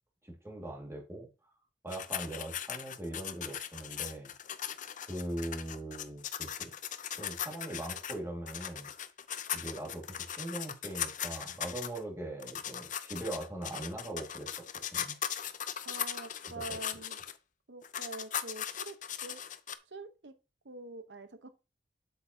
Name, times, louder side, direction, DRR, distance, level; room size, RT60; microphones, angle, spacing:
voice 1, 0.2-1.3 1.8-4.3 5.0-6.7 7.2-8.9 9.5-14.5 14.7-15.2 16.5-16.6, right 1 dB, 15° right, 2.2 m, -41 dB
sound 1, 1.9-8.2 8.5-12.0 12.4-17.3 17.8-19.8, left 9 dB, 45° left, 0.6 m, -39 dB
voice 2, 15.8-17.2 17.7-19.0 19.2-19.4 19.9-20.4 20.6-21.5, right 2 dB, 70° right, 1.0 m, -45 dB
7.8 x 6.8 x 2.8 m
head